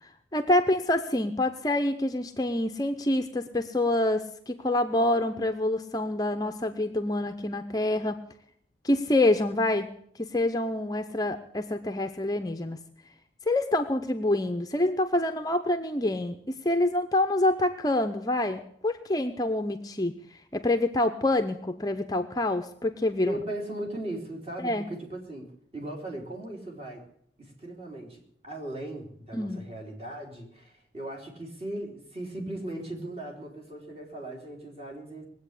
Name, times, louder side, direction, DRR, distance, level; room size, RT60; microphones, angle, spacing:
voice 1, 0.0-8.3 8.8-12.8 13.5-23.3 24.6-24.9 29.3-29.7, left 1 dB, 20° left, 7 dB, 0.6 m, -27 dB
voice 2, 23.3-27.1 27.4-35.3, right 1 dB, 35° right, -1 dB, 3.7 m, -38 dB
20.5 x 8.2 x 8.3 m, 0.68 s
head